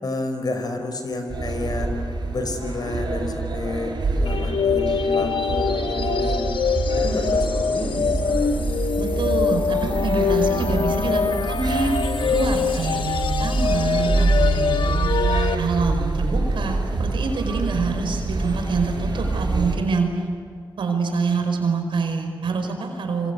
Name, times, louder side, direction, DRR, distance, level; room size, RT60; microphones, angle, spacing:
voice 1, 0.0-2.0 2.3-6.5 7.0-8.6 14.7-15.7, left 2 dB, 55° left, 6 dB, 5.2 m, -30 dB
sound 1, 1.3-19.8, right 2 dB, 60° right, 7.4 m, -25 dB
sound 2, 4.3-15.6, left 6 dB, 80° left, 1.2 m, -24 dB
voice 2, 9.0-11.9 12.3-14.8 15.6-20.2 20.8-23.3, right 4 dB, 85° right, 5 dB, 5.1 m, -26 dB
26.5 x 26.0 x 8.3 m, 2.1 s
cardioid pair, 65°, 8 cm